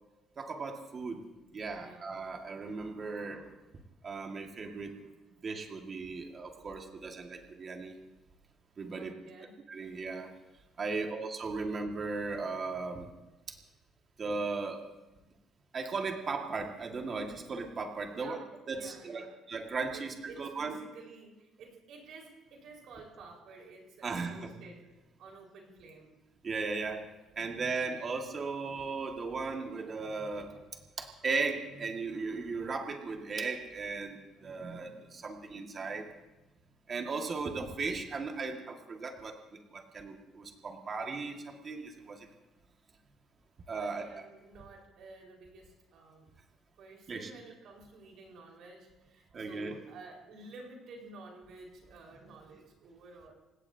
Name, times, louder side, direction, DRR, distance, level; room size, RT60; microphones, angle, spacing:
voice 1, 0.4-1.2 1.5-3.5 4.0-4.9 5.4-8.0 8.8-9.1 9.7-10.3 10.8-13.1 13.5-13.6 14.2-14.8 15.7-18.4 18.7-20.8 24.0-24.5 26.4-27.1 27.4-30.6 31.0-36.1 36.9-42.3 43.7-44.2 47.1-47.3 49.3-49.8, right 4 dB, 35° right, 2 dB, 1.9 m, -37 dB
voice 2, 1.7-2.1 8.9-9.6 10.9-11.2 18.1-19.3 19.9-26.2 27.6-27.9 43.7-46.3 46.8-53.3, right 3 dB, 65° right, 0 dB, 4.9 m, -52 dB
27.5 x 17.0 x 2.8 m, 1.1 s
cardioid pair, 125°, 0 cm